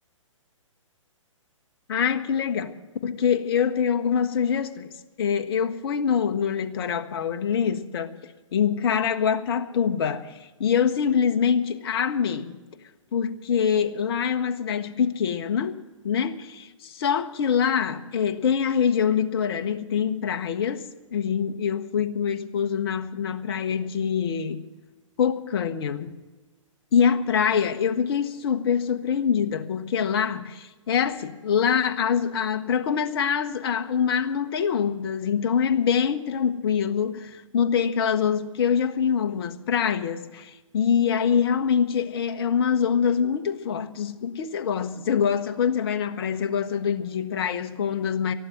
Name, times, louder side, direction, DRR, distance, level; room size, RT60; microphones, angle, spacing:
voice 1, 1.9-4.9 5.2-8.1 8.5-12.6 13.1-15.8 16.0-20.8 21.1-24.6 25.2-26.1 26.9-48.3, left 7 dB, 45° left, 1.1 m, -24 dB
13.5 x 12.0 x 7.4 m
figure-of-eight pair, 125°, 17 cm